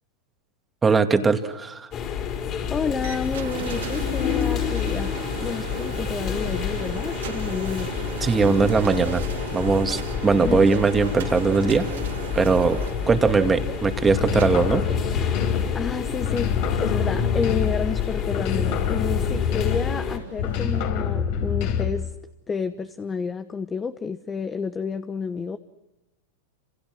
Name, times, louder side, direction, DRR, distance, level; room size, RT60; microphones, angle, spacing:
voice 1, 0.8-1.9 8.2-9.2 9.5-11.9 12.3-12.8 13.1-14.8, right 4 dB, 15° right, 7 dB, 2.2 m, -20 dB
sound 1, 1.9-20.2, left 7 dB, 35° left, 5.0 m, -29 dB
voice 2, 2.7-5.1 5.4-7.9 10.3-10.7 15.5-22.1 22.5-25.6, left 5 dB, 20° left, 10 dB, 1.1 m, -30 dB
sound 2, 3.0-20.9, right 7 dB, 75° right, 2.9 m, -38 dB
sound 3, 14.1-15.8 16.2-18.0 18.3-20.0 20.4-22.1, left 7 dB, 60° left, 3.9 m, -26 dB
28.5 x 27.5 x 6.3 m, 1.0 s
hypercardioid pair, 105°, 0 cm